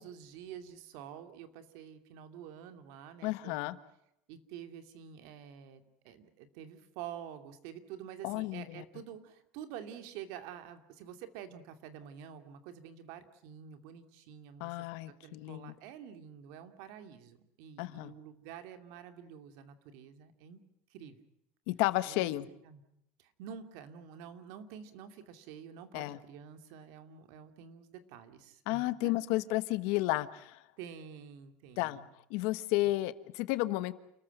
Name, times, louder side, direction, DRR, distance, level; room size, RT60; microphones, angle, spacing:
voice 1, 0.0-3.7 4.3-14.9 15.2-20.6 20.9-21.2 22.1-22.8 23.2-29.5 30.8-32.1, right 8 dB, 70° right, 9 dB, 2.6 m, -48 dB
voice 2, 3.2-3.8 8.2-8.8 14.6-15.7 17.8-18.1 21.7-22.5 25.9-26.2 28.7-30.6 31.8-32.0 32.3-33.9, left 18 dB, 70° left, 14 dB, 1.3 m, -32 dB
29.5 x 14.0 x 9.1 m, 0.79 s
cardioid pair, 145°, 6 cm